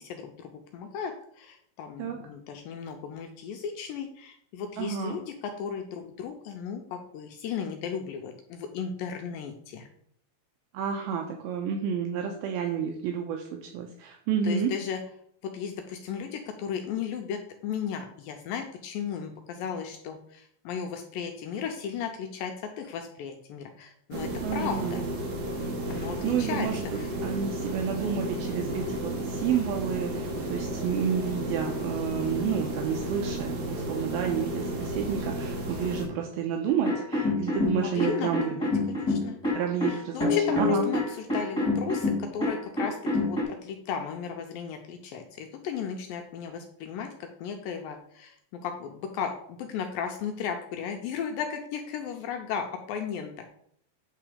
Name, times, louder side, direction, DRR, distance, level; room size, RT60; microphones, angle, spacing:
voice 1, 0.1-9.9 14.4-15.0 15.4-25.0 25.9-26.7 27.0-27.1 37.7-39.4 39.9-47.1 47.4-48.4 48.6-53.5, left 7 dB, 80° left, 4 dB, 2.1 m, -35 dB
voice 2, 4.8-5.2 10.7-14.7 24.4-25.0 25.9-38.5 39.5-40.3 40.6-40.9, right 7 dB, 80° right, 2 dB, 2.4 m, -30 dB
sound 1, 24.1-36.1, right 1 dB, 60° right, 2.5 m, -33 dB
sound 2, 36.8-43.4, left 3 dB, 10° left, 1.5 m, -27 dB
9.0 x 3.8 x 4.9 m, 0.68 s
omnidirectional pair, 4.6 m